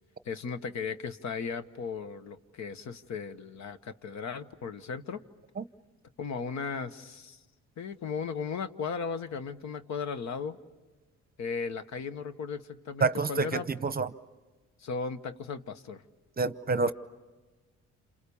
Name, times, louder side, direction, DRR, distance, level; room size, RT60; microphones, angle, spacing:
voice 1, 0.2-5.2 6.2-7.4 7.8-10.6 11.4-13.7 14.8-16.0, left 5 dB, 65° left, 11 dB, 1.2 m, -36 dB
voice 2, 13.0-13.5 13.8-14.1 16.4-16.9, right 4 dB, 30° right, 14 dB, 0.8 m, -27 dB
28.5 x 28.0 x 7.1 m, 1.2 s
cardioid pair, 90°, 30 cm